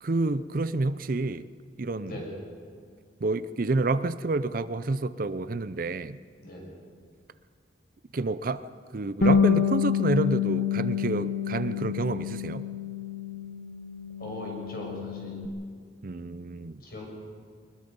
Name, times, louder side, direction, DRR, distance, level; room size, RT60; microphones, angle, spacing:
voice 1, 0.0-1.4 1.8-2.2 3.2-6.2 8.1-8.7 8.9-12.6 16.0-16.8, right 3 dB, 50° right, 14 dB, 0.5 m, -29 dB
voice 2, 2.0-2.4 6.4-6.7 14.2-15.4 16.8-17.1, left 1 dB, 55° left, -1 dB, 6.6 m, -39 dB
Bass guitar, 9.2-15.5, left 7 dB, 80° left, 1.0 m, -27 dB
23.5 x 21.0 x 5.4 m, 2.1 s
head